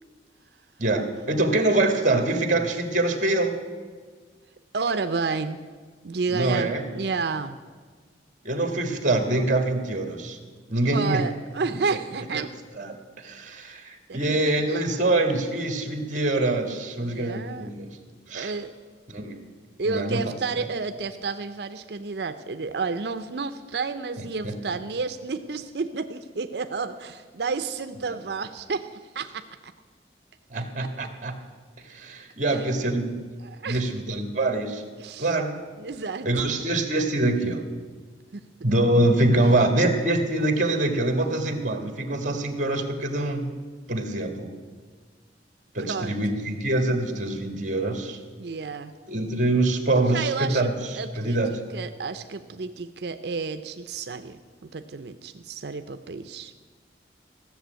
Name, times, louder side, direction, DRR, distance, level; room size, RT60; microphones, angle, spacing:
voice 1, 0.8-3.6 6.3-6.8 8.4-10.4 10.7-11.2 12.3-12.5 12.8-17.9 18.3-18.5 19.1-19.4 19.8-20.2 20.5-20.6 24.4-24.6 30.5-31.3 31.8-33.2 33.6-34.8 35.2-35.5 36.2-37.7 38.6-43.5 43.9-44.5 45.7-48.2 49.1-51.5, right 2 dB, 45° right, 6 dB, 1.7 m, -24 dB
voice 2, 4.7-5.6 6.0-7.6 10.9-12.5 14.1-14.8 17.0-17.7 18.3-18.7 19.8-28.9 29.1-29.4 30.5-30.9 32.5-32.7 33.4-33.9 35.0-35.3 35.8-36.4 38.3-38.4 45.8-46.4 48.4-48.9 50.1-51.4 51.7-56.7, right 4 dB, 65° right, 9 dB, 0.6 m, -31 dB
15.0 x 6.9 x 9.1 m, 1.5 s
head